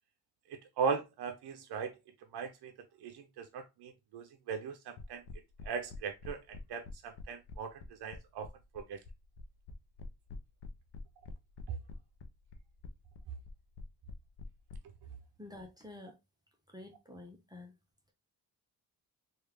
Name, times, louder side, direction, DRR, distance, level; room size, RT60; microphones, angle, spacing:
voice 1, 0.8-1.9 2.3-2.7 3.0-5.2 5.6-8.5 8.7-9.0, right 5 dB, 80° right, 0.6 m, -38 dB
sound 1, 5.0-14.8, left 3 dB, 80° left, 0.6 m, -46 dB
voice 2, 15.4-16.2 16.7-17.7, left 2 dB, 10° right, 0.7 m, -49 dB
3.2 x 2.4 x 3.2 m
cardioid pair, 85°, 39 cm